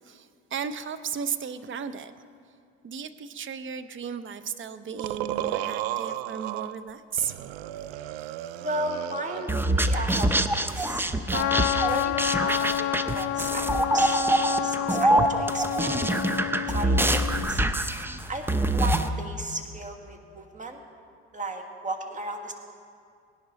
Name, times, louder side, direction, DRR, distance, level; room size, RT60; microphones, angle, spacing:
voice 1, 0.1-2.1 2.8-7.4, right 7 dB, 40° right, 12 dB, 0.8 m, -34 dB
sound 1, 5.0-6.8 7.2-9.6 9.9-11.5, right 13 dB, 80° right, 0.5 m, -34 dB
voice 2, 8.6-11.0 11.3-11.5 11.8-20.8 21.3-22.5, right 2 dB, 25° right, 5 dB, 1.7 m, -35 dB
sound 2, 9.5-19.1, right 1 dB, 5° right, 0.7 m, -25 dB
Trumpet, 11.3-17.5, left 14 dB, 55° left, 0.4 m, -29 dB
18.0 x 11.0 x 4.1 m, 2.3 s
hypercardioid pair, 70°, 31 cm